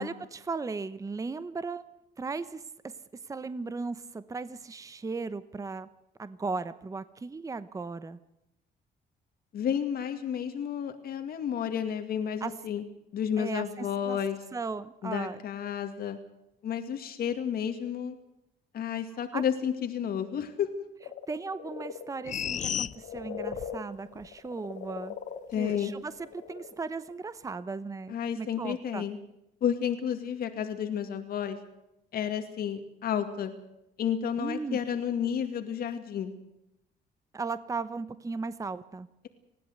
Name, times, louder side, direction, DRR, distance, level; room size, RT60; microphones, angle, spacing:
voice 1, 0.0-1.8 2.2-2.9 3.3-5.9 6.2-8.2 12.4-12.5 13.4-14.2 14.5-15.4 19.3-19.4 21.3-25.2 25.6-29.1 34.4-34.8 37.3-39.1, right 4 dB, 20° right, 14 dB, 0.9 m, -36 dB
voice 2, 9.5-12.8 13.1-14.4 15.0-16.2 16.6-18.2 18.7-20.8 25.5-25.9 28.1-29.2 29.6-31.6 32.1-33.5 34.0-36.3, left 8 dB, 65° left, 6 dB, 2.2 m, -31 dB
sound 1, 21.0-26.8 27.0-27.1, left 8 dB, 80° left, 2.2 m, -40 dB
sound 2, 22.3-23.8 24.2-24.3, left 9 dB, 45° left, 0.8 m, -33 dB
20.5 x 16.5 x 8.0 m, 0.87 s
cardioid pair, 120°, 17 cm